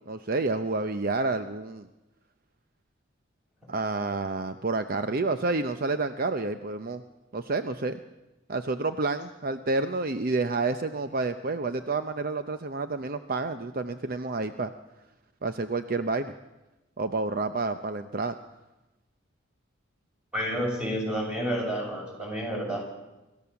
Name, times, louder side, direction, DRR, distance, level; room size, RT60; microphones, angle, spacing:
voice 1, 0.1-1.9 3.7-7.0 7.3-8.0 8.5-14.7 15.4-16.3 17.0-18.4, right 3 dB, 50° right, 9 dB, 0.7 m, -29 dB
voice 2, 20.3-22.8, equal, 5° right, -2 dB, 7.0 m, -30 dB
26.5 x 14.0 x 7.0 m, 1.0 s
head